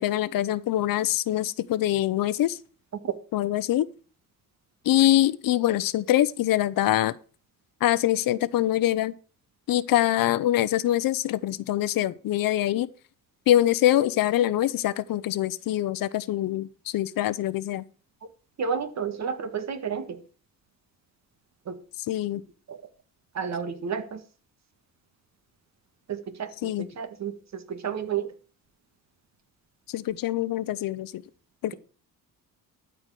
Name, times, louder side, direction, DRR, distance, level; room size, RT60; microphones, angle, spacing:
voice 1, 0.0-2.6 3.3-3.9 4.8-7.1 7.8-9.1 9.7-12.9 13.5-17.8 22.1-22.4 26.6-26.9 29.9-31.2 31.6-31.7, left 13 dB, 70° left, 0.8 m, -24 dB
voice 2, 18.6-20.2 21.7-21.8 22.7-22.8 23.3-24.2 26.1-28.3, right 7 dB, 50° right, 1.8 m, -31 dB
12.5 x 4.9 x 7.6 m
cardioid pair, 100°, 36 cm